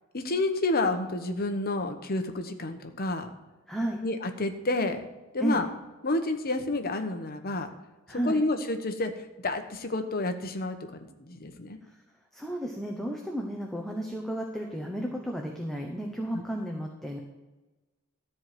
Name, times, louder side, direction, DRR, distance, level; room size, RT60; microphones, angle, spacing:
voice 1, 0.1-3.3 4.0-5.0 5.3-5.7 6.0-7.7 8.1-9.1 9.4-11.8 16.3-16.4, left 2 dB, 45° left, 7 dB, 1.1 m, -29 dB
voice 2, 3.7-4.0 5.4-5.6 8.1-8.4 11.8-11.9 12.3-17.2, right 1 dB, ahead, 0 dB, 1.0 m, -33 dB
13.5 x 4.8 x 7.7 m, 1.1 s
head